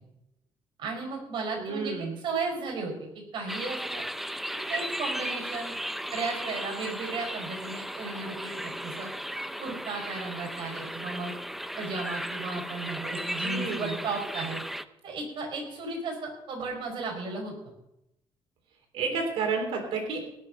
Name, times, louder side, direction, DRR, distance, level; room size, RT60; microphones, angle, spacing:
voice 1, 0.8-4.1 4.5-5.8 6.1-9.1 9.6-11.3 11.8-14.6 15.0-17.5, right 3 dB, 65° right, 1 dB, 5.1 m, -35 dB
voice 2, 1.6-2.1 13.4-14.0 18.9-20.2, right 4 dB, 90° right, 4 dB, 3.5 m, -30 dB
sound 1, 3.5-14.8, equal, ahead, 0.5 m, -35 dB
18.0 x 6.8 x 6.5 m, 0.86 s
cardioid pair, 120°, 9 cm